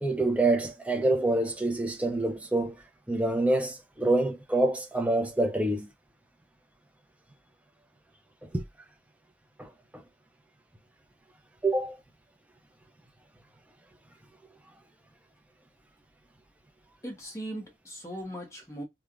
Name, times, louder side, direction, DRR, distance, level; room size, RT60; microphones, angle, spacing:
voice 1, 0.0-2.7 3.1-5.9 8.5-8.6 9.6-9.7 11.6-12.0, right 2 dB, 5° right, 0.4 m, -26 dB
voice 2, 17.0-18.8, right 1 dB, 15° left, 0.8 m, -39 dB
3.1 x 2.1 x 2.3 m
head